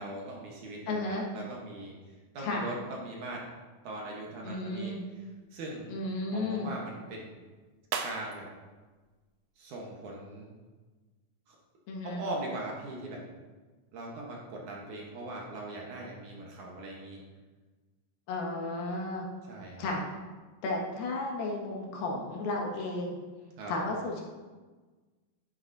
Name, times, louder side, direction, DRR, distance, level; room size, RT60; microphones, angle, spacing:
voice 1, 0.0-3.5 3.8-5.0 5.5-5.9 6.3-7.3 8.0-8.5 9.6-10.5 11.5-11.6 12.0-13.2 13.9-17.2 19.4-19.9 23.6-23.7, right 2 dB, 65° right, -2 dB, 2.3 m, -40 dB
voice 2, 0.9-1.2 2.4-2.7 4.4-5.0 5.9-6.7 11.9-12.2 18.3-19.3 19.8-20.0 20.6-23.2 23.7-24.2, left 2 dB, 75° left, -1 dB, 3.1 m, -33 dB
sound 1, 5.0-10.2, right 6 dB, 85° right, 1.6 m, -44 dB
9.8 x 9.6 x 2.6 m, 1.3 s
omnidirectional pair, 4.2 m